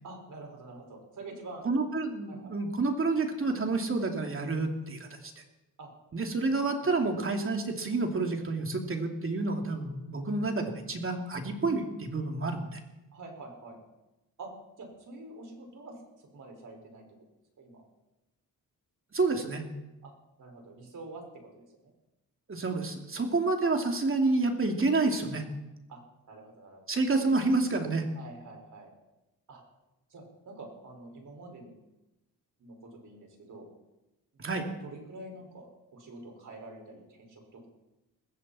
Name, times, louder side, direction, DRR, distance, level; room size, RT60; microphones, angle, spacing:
voice 1, 0.0-1.6 2.3-2.5 5.8-5.9 7.0-7.1 13.1-13.8 14.4-14.5 14.8-17.0 17.6-17.8 20.0-20.1 20.4-21.9 25.9-26.0 26.3-27.0 28.2-28.9 29.5-29.6 30.1-31.7 32.6-33.7 34.6-37.7, right 2 dB, 55° right, 2 dB, 5.7 m, -47 dB
voice 2, 1.6-5.3 6.1-12.8 19.1-19.6 22.5-25.4 26.9-28.1 34.4-34.7, right 3 dB, 35° right, 3 dB, 2.9 m, -29 dB
21.0 x 15.0 x 4.4 m, 0.97 s
cardioid pair, 85°, 37 cm